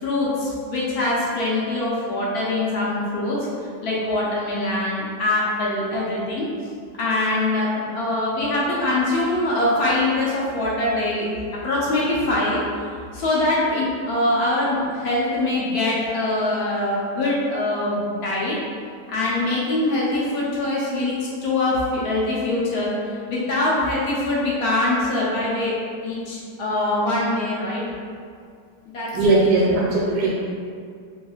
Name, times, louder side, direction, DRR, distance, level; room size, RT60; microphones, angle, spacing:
voice 1, 0.0-6.5 7.0-11.3 11.5-18.6 19.1-25.7 26.0-27.8 28.9-29.7, left 2 dB, 70° left, -6 dB, 1.0 m, -23 dB
voice 2, 29.1-30.3, right 2 dB, 80° right, -6 dB, 1.2 m, -18 dB
3.1 x 2.9 x 2.3 m, 2.2 s
omnidirectional pair, 1.8 m